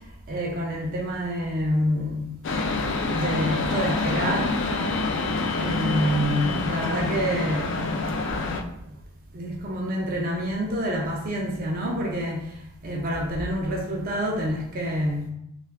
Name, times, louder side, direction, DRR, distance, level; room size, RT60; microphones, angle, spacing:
voice 1, 0.3-2.3 3.1-4.6 5.6-8.0 9.3-12.5 12.8-15.3, equal, 40° right, -1 dB, 0.5 m, -27 dB
sound 1, 2.4-8.6, left 3 dB, 55° left, 0.3 m, -27 dB
2.7 x 2.4 x 3.4 m, 0.78 s
head